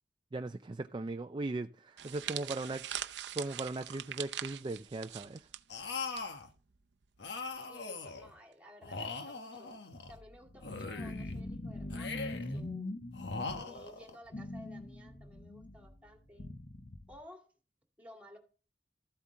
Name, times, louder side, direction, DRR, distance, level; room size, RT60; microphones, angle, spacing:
voice 1, 0.3-2.8 3.4-5.5, right 2 dB, 25° right, 0.4 m, -38 dB
sound 1, 2.0-6.2 6.5-6.7 7.6-7.9, right 11 dB, 80° right, 0.6 m, -42 dB
voice 2, 2.1-2.8 7.7-12.9 13.6-16.5 17.1-17.5 18.0-18.4, left 1 dB, 10° right, 2.2 m, -55 dB
sound 2, 5.7-6.5 7.2-8.3 8.8-10.2 10.6-11.4 11.9-12.6 13.1-14.2, left 4 dB, 75° left, 1.2 m, -41 dB
sound 3, 9.9-13.8 14.3-17.2, left 1 dB, 40° left, 0.9 m, -43 dB
14.0 x 8.1 x 3.7 m
head